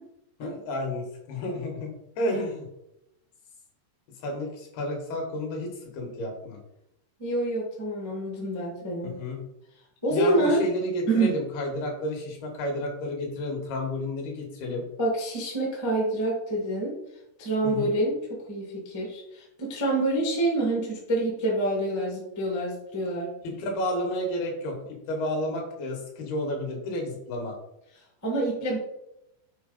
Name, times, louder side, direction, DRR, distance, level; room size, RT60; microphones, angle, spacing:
voice 1, 0.4-2.7 4.2-6.6 9.2-9.4 10.1-14.8 17.6-17.9 23.4-27.6, left 1 dB, 65° left, 1 dB, 3.0 m, -31 dB
voice 2, 7.2-9.1 10.0-10.6 11.1-11.3 15.0-16.9 17.4-23.3 28.2-28.8, right 2 dB, 15° left, -3 dB, 0.5 m, -27 dB
8.0 x 4.4 x 5.2 m, 0.83 s
omnidirectional pair, 5.4 m